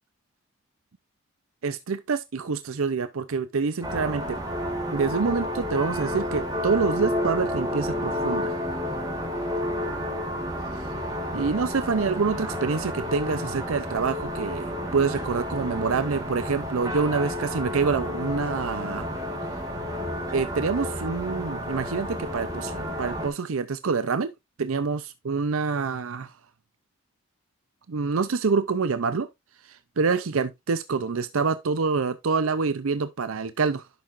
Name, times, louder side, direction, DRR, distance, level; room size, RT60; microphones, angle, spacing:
voice 1, 1.6-4.4 4.9-8.5 11.3-19.1 20.3-24.3 24.6-26.3 27.9-29.3 29.6-33.9, right 4 dB, 70° right, 0.6 m, -26 dB
sound 1, 3.8-23.3, left 1 dB, 15° right, 2.2 m, -31 dB
11.0 x 5.9 x 2.5 m
head